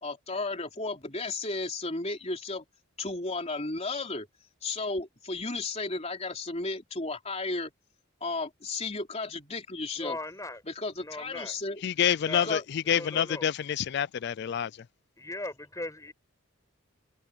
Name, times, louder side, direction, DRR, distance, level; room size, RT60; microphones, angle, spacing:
voice 1, 0.0-2.7 3.0-4.3 4.6-7.7 8.2-10.2 10.6-11.8 12.4-12.7, left 3 dB, 30° left, 3.5 m, -34 dB
voice 2, 10.0-10.6 11.0-11.5 12.3-12.5 12.8-13.5 15.2-16.1, left 2 dB, 15° left, 6.3 m, -38 dB
voice 3, 11.8-14.7, left 9 dB, 55° left, 0.4 m, -27 dB
head